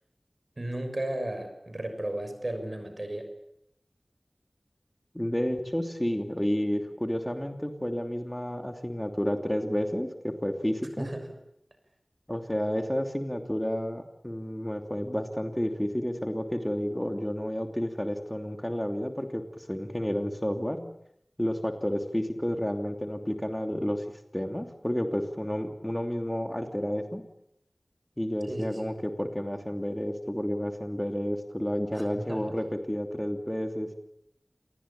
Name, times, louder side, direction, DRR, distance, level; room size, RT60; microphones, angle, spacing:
voice 1, 0.6-3.3 11.0-11.3 28.5-28.9 31.9-32.4, right 1 dB, 50° right, 7 dB, 6.5 m, -34 dB
voice 2, 5.1-11.1 12.3-20.9 21.4-24.0 24.3-27.2 28.2-34.0, equal, 10° left, 6 dB, 2.9 m, -31 dB
28.0 x 19.0 x 9.0 m, 0.74 s
wide cardioid pair, 40°, 0 cm